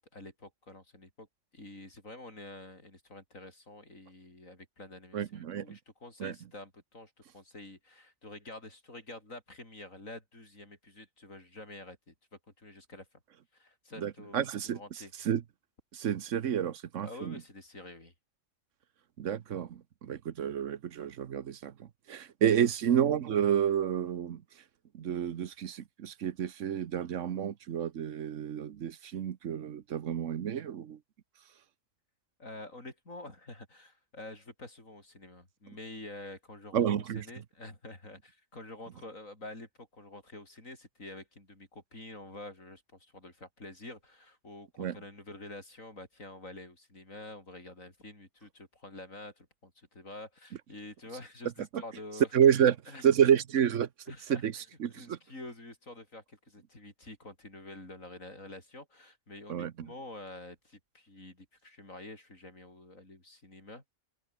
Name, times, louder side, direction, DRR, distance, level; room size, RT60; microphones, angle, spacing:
voice 1, 0.1-1.3 1.5-12.1 12.6-13.1 13.5-15.1 17.0-18.1 32.4-53.0 54.1-54.6 54.9-63.8, left 2 dB, 85° left, 6.8 m, -48 dB
voice 2, 5.1-5.8 6.2-6.3 14.0-14.8 15.2-15.4 15.9-17.3 19.2-24.4 24.9-31.0 36.7-37.2 44.8-45.0 51.7-51.8 52.3-52.8 53.0-53.9 54.3-54.5 54.8-55.2 59.5-59.7, right 9 dB, 70° right, 1.2 m, -29 dB
open air
omnidirectional pair, 1.4 m